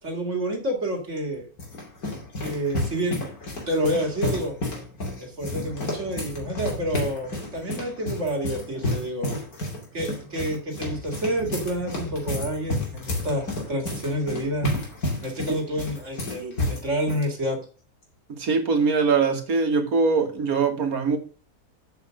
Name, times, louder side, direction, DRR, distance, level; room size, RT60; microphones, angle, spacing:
voice 1, 0.0-1.5 2.4-3.3 3.7-4.5 5.2-9.4 9.9-14.7 15.2-17.6, right 1 dB, 50° right, 2.7 m, -28 dB
sound 1, 1.2-17.3, left 1 dB, 70° left, 3.2 m, -31 dB
voice 2, 18.3-21.2, right 4 dB, 70° right, 2.0 m, -22 dB
8.1 x 5.8 x 6.3 m
omnidirectional pair, 1.6 m